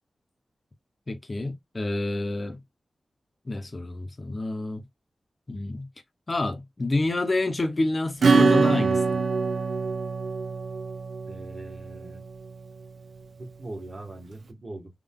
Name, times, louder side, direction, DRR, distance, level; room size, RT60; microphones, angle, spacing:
voice 1, 1.1-2.6 3.5-4.8 5.5-5.9 6.3-9.1, left 2 dB, 30° left, 0.9 m, -28 dB
Acoustic guitar / Strum, 8.2-12.5, right 4 dB, 85° right, 0.7 m, -24 dB
voice 2, 11.3-12.2 13.4-14.9, right 2 dB, 35° right, 1.6 m, -41 dB
3.7 x 2.6 x 3.7 m
wide cardioid pair, 135°, 0 cm